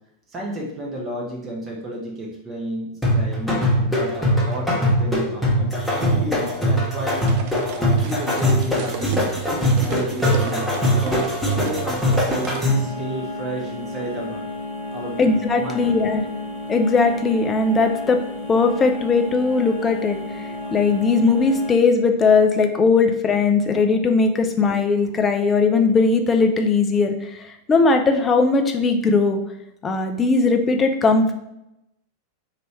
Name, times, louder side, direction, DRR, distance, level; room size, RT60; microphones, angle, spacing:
voice 1, 0.3-7.5 7.7-9.1 9.5-14.4 14.9-15.9, right 1 dB, 20° right, -2 dB, 1.2 m, -32 dB
sound 1, 3.0-12.9, equal, 5° left, 1.2 m, -21 dB
sound 2, 7.2-12.6, right 7 dB, 45° right, 0.4 m, -34 dB
sound 3, 12.6-21.7, left 2 dB, 50° left, 1.1 m, -32 dB
voice 2, 15.2-16.2 16.7-18.2 18.5-29.4 29.8-31.3, left 4 dB, 20° left, 6 dB, 0.5 m, -19 dB
3.0 x 2.9 x 4.5 m, 0.85 s
figure-of-eight pair, 90°, 0 cm